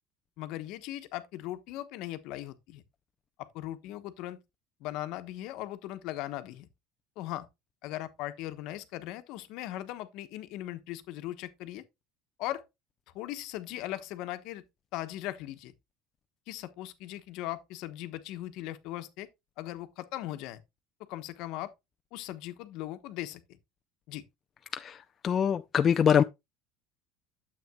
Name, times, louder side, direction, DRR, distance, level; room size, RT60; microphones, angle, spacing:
voice 1, 0.4-2.8 3.4-4.4 4.8-6.7 7.2-7.5 7.8-11.8 12.4-12.6 13.1-14.6 14.9-15.7 16.5-19.3 19.6-20.6 21.1-21.7 22.1-23.6 24.1-24.2, left 14 dB, 65° left, 1.1 m, -39 dB
voice 2, 24.7-26.2, left 8 dB, 30° left, 0.4 m, -24 dB
9.4 x 7.8 x 2.3 m
cardioid pair, 135°, 0 cm